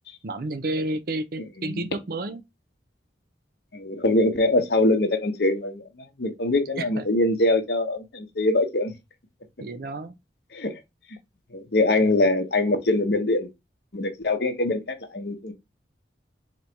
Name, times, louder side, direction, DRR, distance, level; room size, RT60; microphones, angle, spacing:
voice 1, 0.2-2.4 6.8-7.0 9.6-10.1 12.0-12.1, right 2 dB, 50° right, 0.5 m, -31 dB
voice 2, 3.7-5.8 6.2-8.9 10.5-10.8 11.5-13.5 13.9-15.5, left 2 dB, 60° left, 0.9 m, -23 dB
4.0 x 3.0 x 4.5 m
head